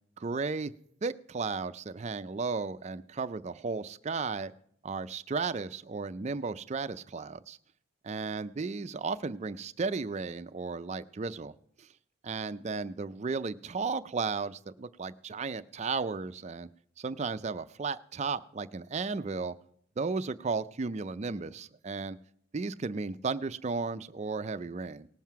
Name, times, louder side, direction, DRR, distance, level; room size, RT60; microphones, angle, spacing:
voice 1, 0.2-0.7 1.0-4.5 4.8-7.6 8.1-11.5 11.8-11.9 12.2-16.7 17.0-19.5 20.0-22.2 22.5-25.1, right 4 dB, 35° right, 13 dB, 0.4 m, -34 dB
18.5 x 7.5 x 4.6 m, 0.66 s
head